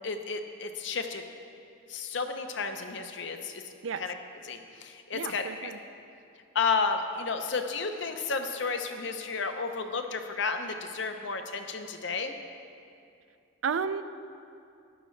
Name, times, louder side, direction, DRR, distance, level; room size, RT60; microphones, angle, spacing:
voice 1, 0.0-1.2 1.9-3.6 4.0-4.1 4.4-5.7 6.5-12.3, left 4 dB, 65° left, 6 dB, 0.8 m, -32 dB
voice 2, 5.1-5.8 13.6-14.0, right 6 dB, 80° right, 11 dB, 0.4 m, -32 dB
13.5 x 10.5 x 3.2 m, 2.5 s
head